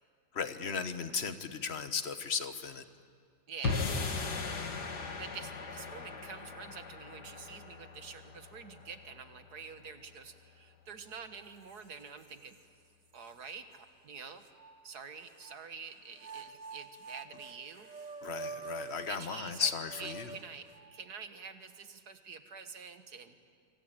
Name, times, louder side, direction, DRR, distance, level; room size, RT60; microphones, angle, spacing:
voice 1, 0.3-2.8 18.2-20.3, left 6 dB, 40° left, 10 dB, 1.4 m, -36 dB
voice 2, 3.5-3.8 5.2-12.6 13.1-14.4 14.8-17.9 19.1-19.7 20.0-23.3, right 6 dB, 65° right, 8 dB, 2.0 m, -47 dB
sound 1, 3.6-10.0, left 4 dB, 70° left, 2.4 m, -38 dB
sound 2, 11.1-11.2 11.7-12.6 13.2-13.3 14.4-15.6 16.1-21.1, right 3 dB, 30° right, 0.8 m, -46 dB
26.0 x 25.0 x 9.0 m, 2.2 s
omnidirectional pair, 1.9 m